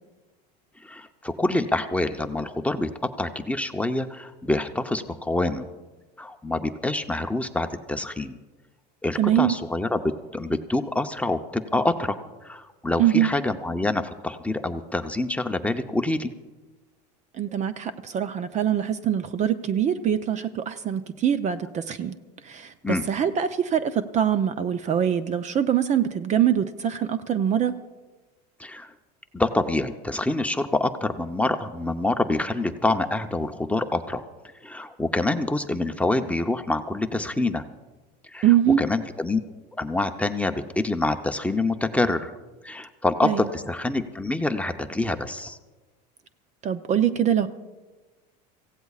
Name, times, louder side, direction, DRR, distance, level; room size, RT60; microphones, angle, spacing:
voice 1, 0.8-5.7 6.2-8.4 9.0-16.3 22.8-23.1 28.6-28.9 29.3-34.2 34.6-37.6 38.2-38.5 38.8-39.4 39.8-42.3 42.6-45.6, left 2 dB, 5° left, 6 dB, 0.7 m, -26 dB
voice 2, 9.2-9.6 13.0-13.3 17.3-22.1 22.4-27.8 38.4-38.8 43.2-43.5 46.6-47.5, right 10 dB, 35° right, 12 dB, 0.6 m, -23 dB
25.5 x 16.0 x 2.4 m, 1.2 s
supercardioid pair, 110°, 21 cm